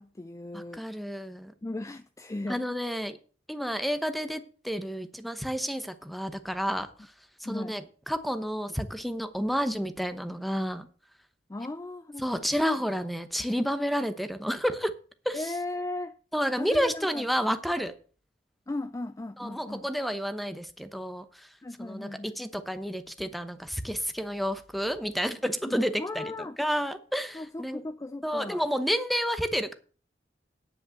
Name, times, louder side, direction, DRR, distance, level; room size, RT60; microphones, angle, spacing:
voice 1, 0.0-1.0 1.6-2.6 7.4-7.8 11.5-12.5 15.3-16.2 16.6-17.3 18.7-19.9 21.6-22.3 25.6-26.6 27.3-28.7, left 2 dB, 20° left, 0.4 m, -37 dB
voice 2, 0.5-1.5 2.5-3.2 3.5-6.9 7.4-10.9 12.2-14.9 15.2-15.5 16.3-17.9 19.4-21.5 21.8-27.8 28.2-29.7, equal, ahead, 0.9 m, -30 dB
10.0 x 5.6 x 7.6 m
head